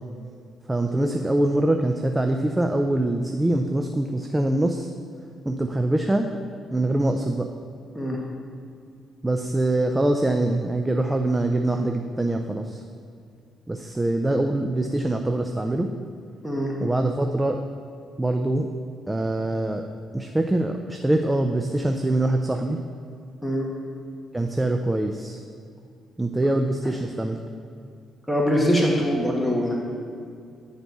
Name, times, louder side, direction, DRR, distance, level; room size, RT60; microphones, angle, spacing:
voice 1, 0.7-4.9 5.5-6.3 6.7-7.5 9.2-12.8 13.7-15.9 16.8-17.6 18.2-18.7 19.1-19.8 20.1-22.8 24.3-25.4 26.2-27.4, right 1 dB, 15° right, 4 dB, 0.4 m, -24 dB
voice 2, 16.4-16.7 23.4-23.7 26.8-26.9 28.3-29.7, equal, 5° left, -3 dB, 1.2 m, -23 dB
10.0 x 4.1 x 4.7 m, 2.4 s
cardioid pair, 90°, 0 cm